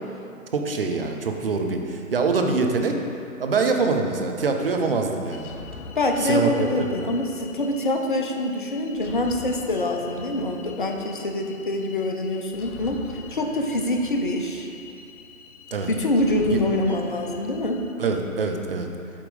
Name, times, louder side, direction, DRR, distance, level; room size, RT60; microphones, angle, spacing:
voice 1, 0.5-3.0 3.4-5.5 6.2-7.0 15.7-15.9 16.5-16.6 18.0-18.9, right 4 dB, 40° right, 3 dB, 0.6 m, -24 dB
sound 1, 5.3-17.9, left 4 dB, 85° left, 0.6 m, -43 dB
voice 2, 6.0-13.0 13.3-14.7 15.9-17.9, left 1 dB, 40° left, 3 dB, 0.5 m, -25 dB
8.6 x 3.0 x 5.1 m, 2.6 s
figure-of-eight pair, 135°, 42 cm